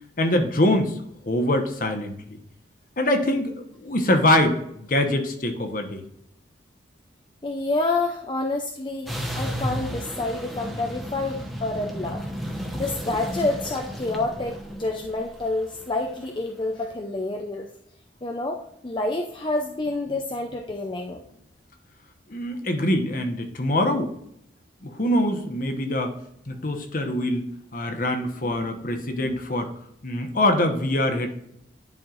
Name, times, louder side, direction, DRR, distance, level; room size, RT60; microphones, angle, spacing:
voice 1, 0.2-1.0 1.2-2.4 3.0-6.0 22.3-24.1 24.8-26.1 26.5-27.4 27.7-29.7 30.0-31.3, left 1 dB, 45° left, 5 dB, 1.1 m, -24 dB
voice 2, 7.4-12.2 12.7-17.7 18.2-18.6 18.8-21.2, left 2 dB, 25° left, 2 dB, 0.5 m, -28 dB
sound 1, 9.1-16.4, equal, ahead, 0.9 m, -33 dB
10.5 x 4.4 x 2.5 m, 0.74 s
head